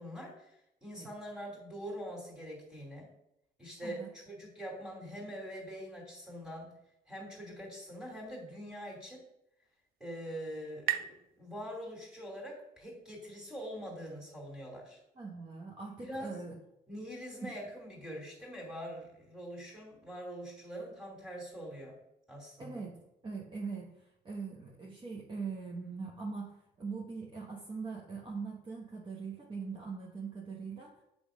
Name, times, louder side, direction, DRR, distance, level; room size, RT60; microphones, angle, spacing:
voice 1, 0.0-3.1 3.6-6.7 7.1-9.2 10.0-15.0 16.0-16.4 16.9-22.0 22.3-22.8, equal, 5° right, -1 dB, 2.8 m, -44 dB
sound 1, 9.4-12.8, right 12 dB, 65° right, 0.5 m, -41 dB
voice 2, 15.2-16.6 22.6-22.9 23.2-30.9, right 4 dB, 30° right, -2 dB, 1.2 m, -41 dB
8.4 x 3.4 x 5.1 m, 0.84 s
cardioid pair, 110°, 17 cm